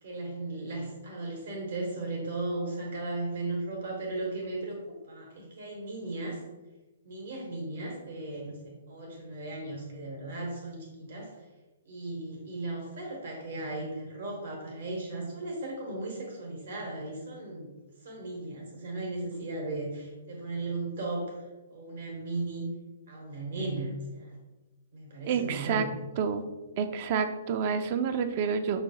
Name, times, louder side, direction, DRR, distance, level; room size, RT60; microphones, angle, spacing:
voice 1, 0.0-4.8 5.1-6.4 7.0-11.4 11.8-17.7 18.0-21.4 21.7-22.7 23.1-24.4 24.9-25.9, right 2 dB, 65° right, -1 dB, 1.1 m, -36 dB
voice 2, 25.3-25.9 26.2-26.4 26.8-28.8, right 6 dB, 45° right, 9 dB, 0.3 m, -28 dB
5.0 x 2.3 x 2.8 m, 1.1 s
hypercardioid pair, 140°, 0 cm